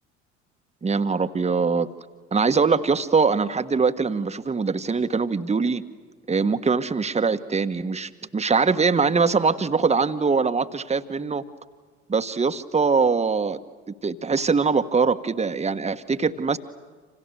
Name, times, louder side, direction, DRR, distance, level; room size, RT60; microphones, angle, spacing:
voice 1, 0.8-1.9 2.3-5.8 6.3-11.4 12.1-13.6 13.9-16.6, right 5 dB, 20° right, 9 dB, 1.4 m, -22 dB
29.5 x 27.5 x 7.0 m, 1.4 s
figure-of-eight pair, 55°, 36 cm